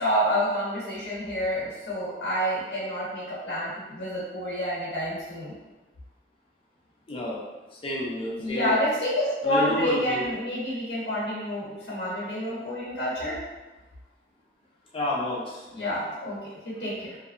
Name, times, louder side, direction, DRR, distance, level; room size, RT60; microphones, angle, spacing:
voice 1, 0.0-5.6 8.4-13.4 15.7-17.2, equal, 65° left, -8 dB, 0.7 m, -28 dB
voice 2, 7.1-7.4 7.7-8.7 9.4-10.3 14.9-15.7, left 1 dB, 30° left, -4 dB, 0.5 m, -30 dB
2.7 x 2.2 x 2.5 m, 1.1 s
head